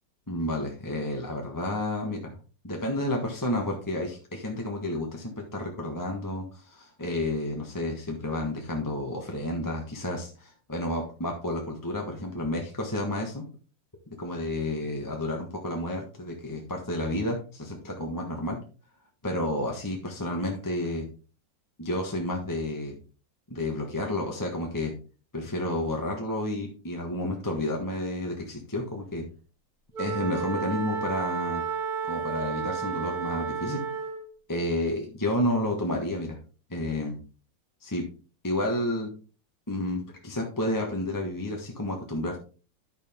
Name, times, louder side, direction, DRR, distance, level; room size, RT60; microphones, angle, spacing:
voice 1, 0.3-2.3 2.6-13.4 14.1-18.6 19.2-21.1 21.8-22.9 23.5-24.9 25.3-29.3 30.0-31.6 32.0-33.8 34.5-36.4 36.7-37.2 37.8-38.1 38.4-39.1 39.7-42.4, left 1 dB, 10° left, 1 dB, 1.2 m, -31 dB
Wind instrument woodwind instrument, 29.9-34.3, right 6 dB, 55° right, 4.9 m, -32 dB
9.8 x 6.6 x 3.6 m, 0.36 s
omnidirectional pair, 2.0 m